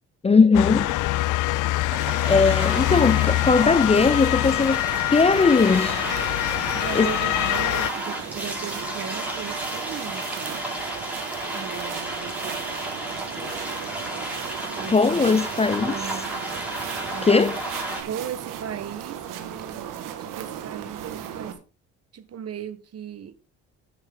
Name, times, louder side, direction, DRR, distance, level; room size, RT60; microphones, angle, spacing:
voice 1, 0.2-0.9 2.3-4.8 5.1-6.0 6.9-7.1 14.9-15.9 17.2-17.6, left 4 dB, 20° left, 0.5 m, -19 dB
Motor vehicle (road) / Siren, 0.5-7.9, left 17 dB, 70° left, 0.5 m, -24 dB
sound 1, 1.9-18.0, right 1 dB, 5° right, 4.6 m, -33 dB
sound 2, 5.1-21.5, right 9 dB, 80° right, 1.7 m, -37 dB
voice 2, 6.7-10.6 11.5-12.9 14.7-15.4 15.9-16.3 17.1-17.4 18.1-21.6 22.1-23.3, right 8 dB, 50° right, 1.3 m, -37 dB
10.5 x 8.9 x 3.7 m
supercardioid pair, 75°, 32 cm